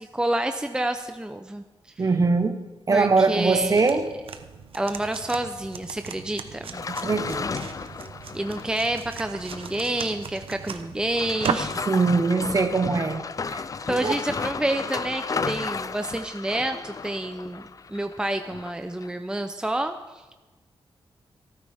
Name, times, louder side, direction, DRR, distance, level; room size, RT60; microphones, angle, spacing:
voice 1, 0.0-1.6 2.9-3.9 4.7-6.8 8.3-12.0 13.9-20.2, right 1 dB, 10° right, 7 dB, 0.7 m, -29 dB
voice 2, 2.0-2.6 2.9-4.1 6.9-7.4 11.9-13.6 14.0-14.2, right 4 dB, 40° right, 8 dB, 1.2 m, -22 dB
sound 1, 3.5-11.8, right 7 dB, 80° right, 0.9 m, -37 dB
sound 2, 6.7-10.4 10.7-10.8 11.1-18.7 19.0-19.1, left 5 dB, 40° left, 0.4 m, -33 dB
26.0 x 9.6 x 3.6 m, 1.2 s
cardioid pair, 90°, 9 cm